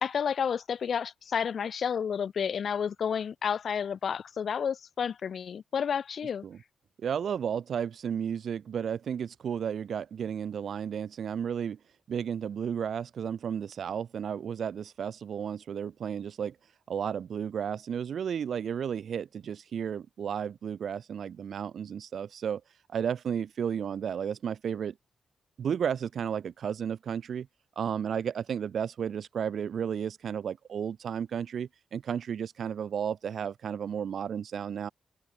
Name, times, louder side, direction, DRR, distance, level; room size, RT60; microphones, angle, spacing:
voice 1, 0.0-6.4, left 7 dB, 60° left, 0.4 m, -30 dB
voice 2, 7.0-11.8 12.1-16.6 16.9-22.6 22.9-24.9 25.6-27.5 27.8-34.9, right 8 dB, 65° right, 2.3 m, -33 dB
cardioid pair, 115°, 0 cm